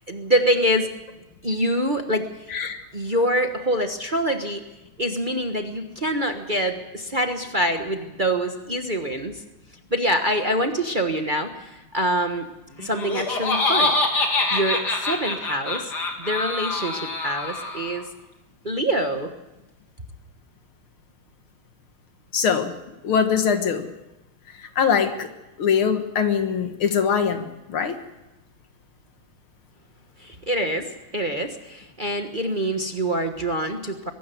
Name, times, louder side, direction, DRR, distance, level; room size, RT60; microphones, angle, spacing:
voice 1, 0.1-0.9 1.4-2.2 2.9-4.6 5.0-9.4 9.9-12.5 12.8-13.9 14.5-15.9 16.2-18.0 18.6-19.3 30.2-34.1, right 1 dB, 25° right, 5 dB, 1.2 m, -25 dB
voice 2, 2.5-2.8 22.3-22.7 23.0-23.9 24.6-25.3 25.6-28.0, left 7 dB, 75° left, 8 dB, 2.4 m, -22 dB
Laughter, 12.8-18.0, left 3 dB, 50° left, 3.1 m, -25 dB
23.0 x 12.5 x 9.4 m, 1.0 s
omnidirectional pair, 2.4 m